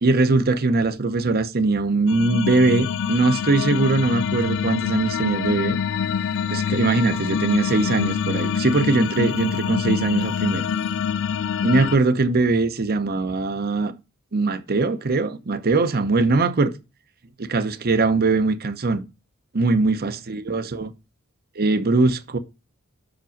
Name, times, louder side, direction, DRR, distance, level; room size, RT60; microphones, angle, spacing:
voice 1, 0.0-5.8 6.5-10.6 11.6-13.9 14.3-16.7 17.4-19.0 19.5-20.9 21.6-22.4, right 3 dB, 45° right, 0.8 m, -21 dB
sound 1, 2.1-12.0, left 7 dB, 60° left, 0.3 m, -25 dB
6.1 x 5.1 x 5.1 m
head